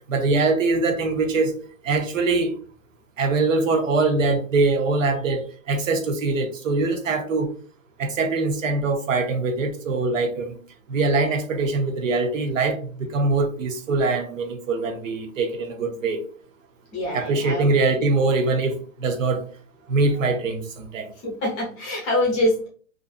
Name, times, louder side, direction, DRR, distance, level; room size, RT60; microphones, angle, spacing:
voice 1, 0.1-1.5 1.8-2.5 3.2-7.5 8.0-10.6 10.9-16.2 17.1-19.4 19.9-21.1, right 3 dB, 70° right, 0.7 m, -23 dB
voice 2, 16.9-17.7 21.2-22.7, left 1 dB, 15° left, 0.7 m, -25 dB
2.5 x 2.3 x 2.4 m
hypercardioid pair, 160°, 41 cm